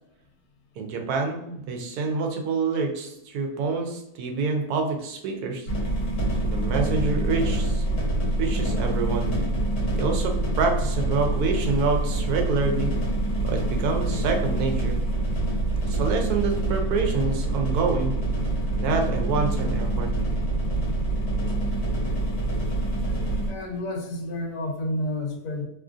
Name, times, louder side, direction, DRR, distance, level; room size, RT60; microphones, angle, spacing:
voice 1, 0.8-5.7 6.4-7.8 8.4-9.3 9.9-12.9 13.4-15.0 15.8-18.1 18.7-20.1, right 4 dB, 85° right, 3 dB, 1.1 m, -27 dB
sound 1, 5.7-23.5, right 2 dB, 60° left, 1.3 m, -26 dB
voice 2, 23.4-25.7, left 1 dB, 85° left, 2 dB, 1.2 m, -30 dB
3.1 x 2.4 x 2.5 m, 0.82 s
omnidirectional pair, 1.6 m